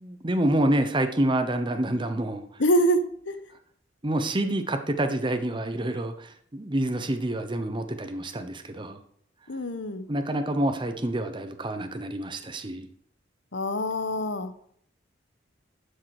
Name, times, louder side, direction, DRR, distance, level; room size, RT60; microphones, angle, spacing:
voice 1, 0.0-2.5 4.0-9.0 10.1-12.9, right 1 dB, 25° right, 7 dB, 0.9 m, -27 dB
voice 2, 2.6-3.4 9.5-10.1 13.5-14.5, right 1 dB, 85° left, 10 dB, 1.2 m, -25 dB
12.5 x 6.6 x 4.9 m, 0.64 s
head